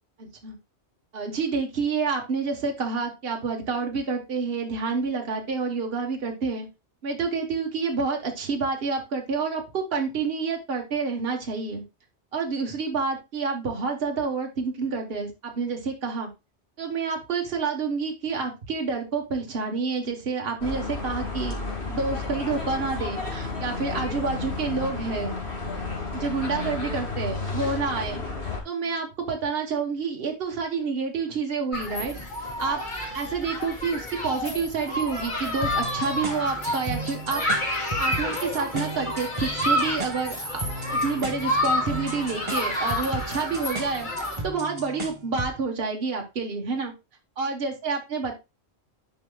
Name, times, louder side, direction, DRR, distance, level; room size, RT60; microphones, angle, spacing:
voice 1, 0.2-0.5 1.1-6.7 7.0-11.8 12.3-16.3 16.8-21.6 21.9-25.3 26.1-28.2 28.6-32.8 33.1-37.4 38.0-40.6 41.0-44.1 44.4-46.9 47.4-48.4, right 4 dB, 60° right, 2 dB, 1.4 m, -28 dB
sound 1, 20.6-28.6, left 3 dB, 70° left, 2.1 m, -32 dB
Human group actions, 31.7-44.4, left 1 dB, 45° left, 2.2 m, -29 dB
sound 2, 35.6-45.6, right 2 dB, 30° right, 1.0 m, -35 dB
10.5 x 4.9 x 2.2 m, 0.25 s
omnidirectional pair, 1.1 m